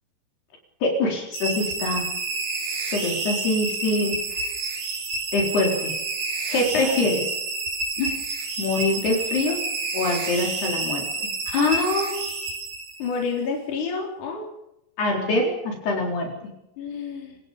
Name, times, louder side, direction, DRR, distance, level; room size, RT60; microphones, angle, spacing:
voice 1, 0.8-2.1 2.9-4.4 5.3-5.9 6.5-7.3 8.0-8.2 8.6-9.6 9.9-12.2 15.0-16.5, left 2 dB, 65° left, 1 dB, 6.0 m, -24 dB
sound 1, 1.3-13.2, right 3 dB, 50° right, 4.8 m, -29 dB
voice 2, 6.8-7.1 13.0-14.5 16.8-17.4, left 5 dB, 45° left, 0 dB, 5.1 m, -30 dB
28.0 x 18.5 x 5.2 m, 0.85 s
omnidirectional pair, 5.0 m